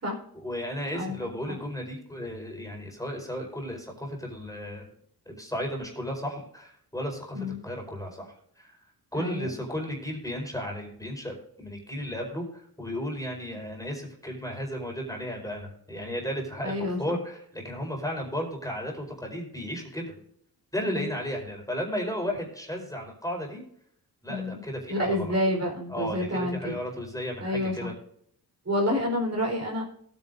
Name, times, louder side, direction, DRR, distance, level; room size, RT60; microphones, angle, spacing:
voice 1, 0.3-4.9 5.2-8.8 9.1-20.2 20.7-23.6 24.2-25.4 25.9-27.9, equal, 10° left, 1 dB, 4.7 m, -34 dB
voice 2, 9.1-9.6 16.6-17.2 20.9-21.1 24.3-24.6 24.9-26.8 27.4-27.9 28.7-29.8, left 1 dB, 40° right, 0 dB, 4.1 m, -29 dB
18.0 x 9.4 x 2.6 m, 0.67 s
cardioid pair, 85°, 38 cm